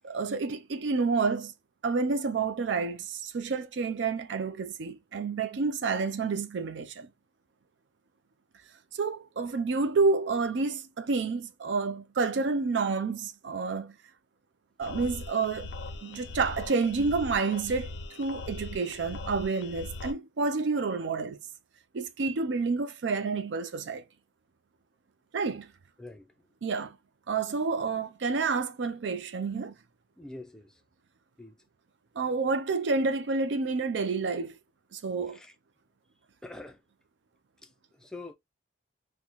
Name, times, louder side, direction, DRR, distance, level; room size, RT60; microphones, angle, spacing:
voice 1, 0.0-1.5 1.8-7.1 8.9-14.0 14.8-15.7 16.0-21.4 21.9-24.0 25.3-25.7 26.6-27.0 27.3-29.8 32.2-34.5 34.9-35.4, right 4 dB, 70° right, 0.4 m, -29 dB
sound 1, 14.8-20.1, left 3 dB, 65° left, 0.4 m, -40 dB
voice 2, 26.0-26.3 30.2-30.8 31.4-31.6 35.3-35.5 36.4-36.8 37.6-38.3, left 2 dB, 5° left, 0.4 m, -45 dB
3.9 x 2.1 x 2.9 m
head